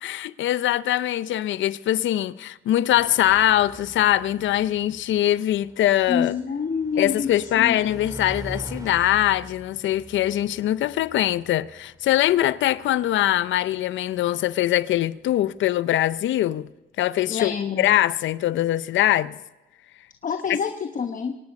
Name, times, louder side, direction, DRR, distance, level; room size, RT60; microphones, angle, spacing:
voice 1, 0.0-6.4 7.0-16.7 17.0-19.4 20.5-20.6, left 13 dB, 75° left, 0.6 m, -22 dB
sound 1, 2.9-13.9, right 2 dB, 15° right, 2.2 m, -43 dB
voice 2, 6.1-8.0 17.3-17.9 20.2-21.3, left 6 dB, 40° left, 1.0 m, -27 dB
24.5 x 10.5 x 5.3 m
cardioid pair, 90°, 20 cm